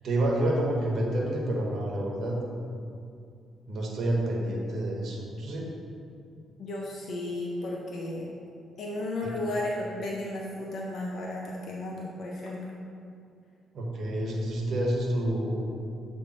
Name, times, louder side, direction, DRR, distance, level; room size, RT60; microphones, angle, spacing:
voice 1, 0.0-2.4 3.7-5.6 13.7-15.6, right 1 dB, 60° right, -2 dB, 1.2 m, -28 dB
voice 2, 6.6-8.3 8.8-12.6, left 1 dB, 60° left, -3 dB, 0.8 m, -34 dB
7.6 x 3.3 x 4.3 m, 2.4 s
cardioid pair, 90°, 0 cm